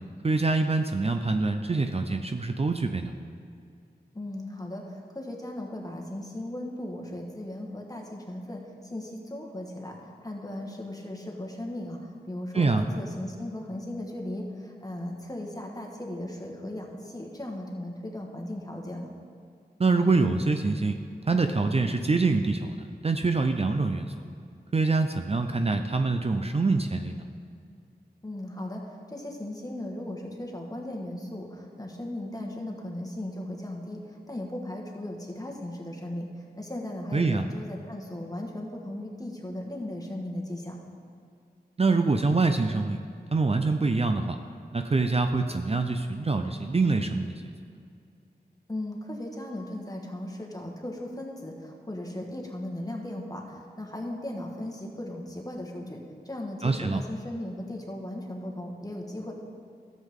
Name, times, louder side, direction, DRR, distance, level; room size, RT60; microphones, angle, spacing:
voice 1, 0.2-3.1 12.5-12.8 19.8-21.0 21.3-24.1 24.7-27.3 37.1-37.4 41.8-43.0 43.3-44.4 44.7-47.5 56.6-57.0, right 3 dB, 35° right, 6 dB, 0.4 m, -25 dB
voice 2, 4.1-19.1 28.2-40.8 48.7-59.3, left 1 dB, 20° left, 0 dB, 1.4 m, -37 dB
13.0 x 7.5 x 3.6 m, 2.3 s
wide cardioid pair, 65°, 17 cm